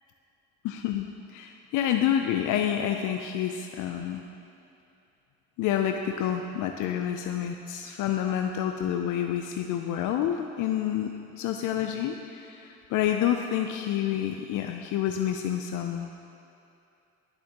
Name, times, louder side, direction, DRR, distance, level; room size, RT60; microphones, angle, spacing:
voice 1, 0.6-4.2 5.6-11.1 11.4-16.1, left 10 dB, 85° left, 4 dB, 0.5 m, -28 dB
10.0 x 6.9 x 2.9 m, 2.7 s
cardioid pair, 90°, 30 cm